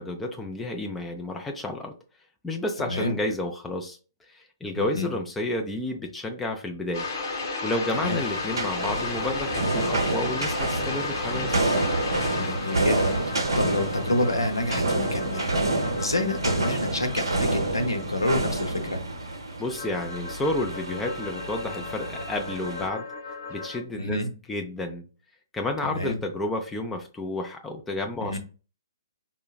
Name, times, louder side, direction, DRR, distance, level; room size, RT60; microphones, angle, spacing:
voice 1, 0.0-2.0 2.4-4.0 4.3-7.1 7.6-11.8 19.6-23.0 23.5-24.2 24.5-25.1 25.5-28.4, left 1 dB, 5° left, 3 dB, 0.4 m, -31 dB
voice 2, 2.8-3.2 4.8-5.1 8.0-8.2 12.3-19.0 24.0-24.3 25.8-26.2 28.2-28.4, left 1 dB, 80° left, 5 dB, 0.7 m, -28 dB
sound 1, 6.9-23.8, left 3 dB, 45° left, 0.8 m, -35 dB
sound 2, 8.0-22.9, right 2 dB, 70° right, 0.6 m, -29 dB
4.6 x 2.1 x 2.3 m, 0.35 s
figure-of-eight pair, 125°, 2 cm